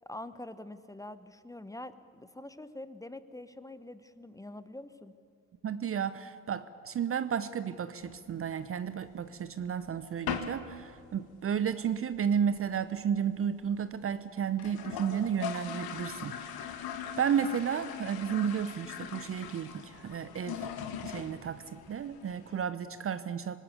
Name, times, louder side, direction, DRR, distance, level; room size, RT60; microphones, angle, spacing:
voice 1, 0.0-5.1, left 1 dB, 5° left, 13 dB, 1.1 m, -45 dB
voice 2, 5.6-16.7 17.2-20.7 21.0-23.6, right 8 dB, 30° right, 13 dB, 0.9 m, -32 dB
sound 1, 8.0-9.1 9.5-9.6 9.8-10.0 10.3-10.7 11.0-11.1 11.4-11.5 11.7-12.2 12.5-12.6 12.8-12.9 13.1-13.2 13.7-13.8 14.1-14.2 14.5-22.7, left 8 dB, 50° left, 2.2 m, -40 dB
26.0 x 19.5 x 8.5 m, 2.3 s
figure-of-eight pair, 60°, 46 cm